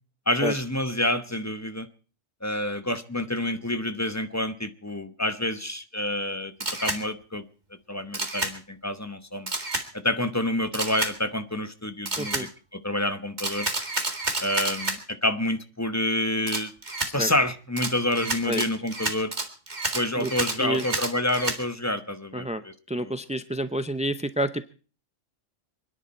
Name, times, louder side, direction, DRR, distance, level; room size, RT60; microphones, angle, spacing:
voice 1, 0.3-1.9 2.4-6.5 6.8-7.4 7.9-9.6 9.9-12.5 12.8-13.7 14.4-16.7 17.1-19.3 19.9-23.1, left 1 dB, 15° left, 1.0 m, -28 dB
Camera, 6.6-7.0 8.1-8.5 9.5-9.9 10.7-11.1 12.1-12.5 13.4-15.0 16.5-17.1 17.8-21.6, right 2 dB, 35° right, 2.1 m, -29 dB
voice 2, 12.2-12.5 17.0-17.3 18.4-18.6 20.2-20.3 20.6-20.9 22.3-22.6 22.9-24.7, right 1 dB, 10° right, 0.3 m, -29 dB
27.5 x 10.5 x 4.4 m
omnidirectional pair, 1.3 m